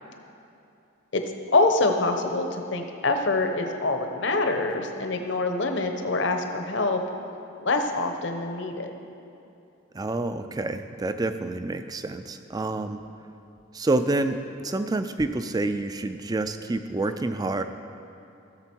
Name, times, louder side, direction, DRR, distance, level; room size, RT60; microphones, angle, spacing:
voice 1, 1.5-7.0 7.6-8.9, left 2 dB, 60° left, 5 dB, 0.8 m, -25 dB
voice 2, 9.9-13.0 13.7-17.6, right 2 dB, 20° right, 9 dB, 0.3 m, -28 dB
15.0 x 6.9 x 4.5 m, 2.7 s
head